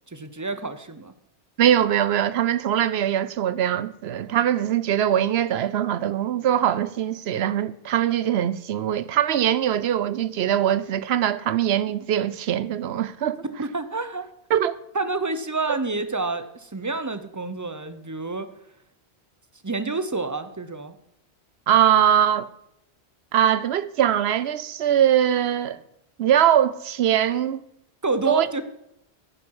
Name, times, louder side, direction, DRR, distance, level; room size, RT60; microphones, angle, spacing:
voice 1, 0.1-1.1 13.6-14.3 14.9-18.5 19.6-21.0 28.0-28.6, right 3 dB, 20° right, 0.8 m, -28 dB
voice 2, 1.6-13.4 14.5-14.8 21.7-22.5 23.3-25.8 26.2-27.6 28.3-28.5, right 10 dB, 75° right, 0.9 m, -22 dB
11.0 x 9.5 x 4.8 m
omnidirectional pair, 1.1 m